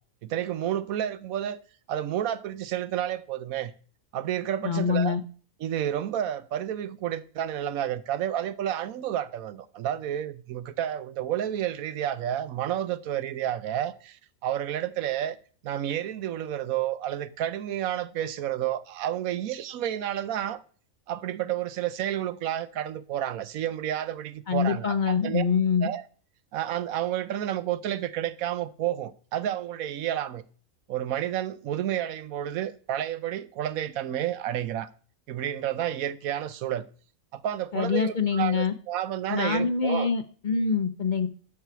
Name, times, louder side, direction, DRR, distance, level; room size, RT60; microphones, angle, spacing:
voice 1, 0.2-1.6 1.9-3.7 4.1-5.2 5.6-15.4 15.6-20.6 21.1-25.4 25.8-26.0 26.5-30.4 30.9-34.9 35.3-36.8 37.3-40.1, right 11 dB, 85° right, 1.1 m, -30 dB
voice 2, 4.6-5.2 24.5-25.9 37.7-38.7 39.3-41.3, left 6 dB, 50° left, 0.6 m, -25 dB
11.5 x 4.7 x 6.8 m
omnidirectional pair, 1.4 m